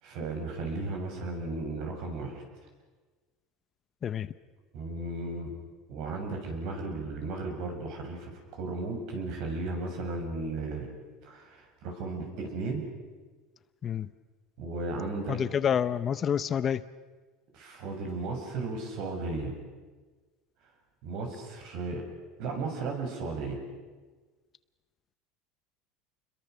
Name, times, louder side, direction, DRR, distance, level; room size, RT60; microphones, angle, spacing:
voice 1, 0.0-2.4 4.7-5.5 5.9-10.9 11.2-12.8 14.6-15.4 17.5-19.5 21.0-22.0 22.4-23.6, right 3 dB, 60° right, 3 dB, 7.2 m, -35 dB
voice 2, 15.3-16.8, left 8 dB, 30° left, 15 dB, 0.7 m, -28 dB
29.5 x 22.0 x 6.8 m, 1.4 s
supercardioid pair, 140°, 0 cm